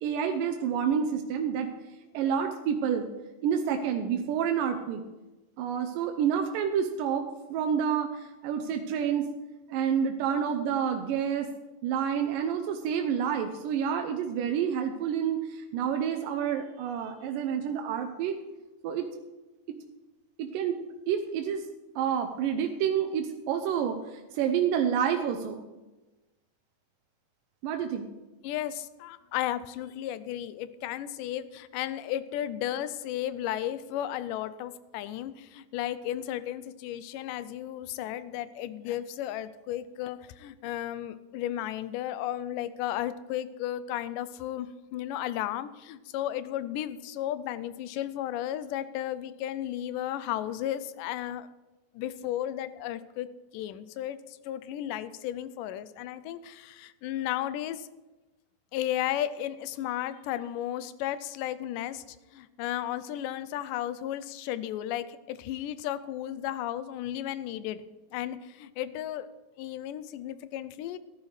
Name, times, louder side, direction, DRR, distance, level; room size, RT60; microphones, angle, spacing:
voice 1, 0.0-1.7 2.1-3.1 3.4-5.0 5.6-9.3 9.7-11.5 11.8-18.3 18.8-19.2 19.7-19.8 20.4-21.6 22.0-25.6 27.6-28.1, right 8 dB, 90° right, 5 dB, 2.4 m, -29 dB
voice 2, 28.4-51.5 52.0-57.9 58.7-67.8 68.1-69.3 69.6-71.0, left 12 dB, 80° left, 14 dB, 2.1 m, -34 dB
13.5 x 12.0 x 3.2 m, 1.1 s
omnidirectional pair, 3.8 m